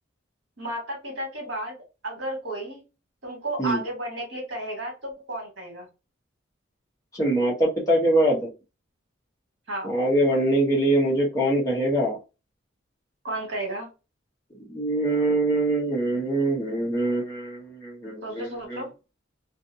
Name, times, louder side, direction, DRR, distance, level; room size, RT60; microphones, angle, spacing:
voice 1, 0.6-1.8 2.0-2.8 3.2-5.9 9.7-9.9 13.2-13.9 18.2-18.9, right 1 dB, 60° right, 0 dB, 1.4 m, -33 dB
voice 2, 7.1-8.5 9.8-12.2 14.7-18.8, right 1 dB, 15° left, -4 dB, 0.9 m, -23 dB
2.5 x 2.5 x 2.6 m, 0.29 s
head